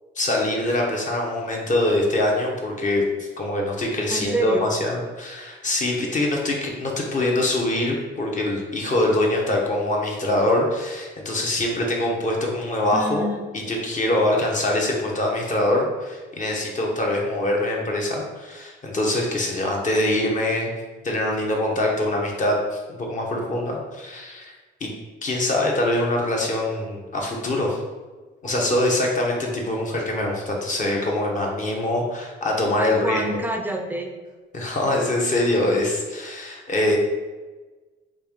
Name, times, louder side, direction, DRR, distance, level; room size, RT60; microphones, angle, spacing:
voice 1, 0.2-13.3 13.5-20.7 21.0-24.5 24.8-24.9 25.2-27.8 28.4-33.4 34.5-37.0, left 1 dB, 40° left, -1 dB, 0.8 m, -24 dB
voice 2, 4.1-4.7 12.9-13.4 32.8-34.1, right 1 dB, 10° right, 2 dB, 0.4 m, -27 dB
3.3 x 2.6 x 3.5 m, 1.3 s
cardioid pair, 90°, 20 cm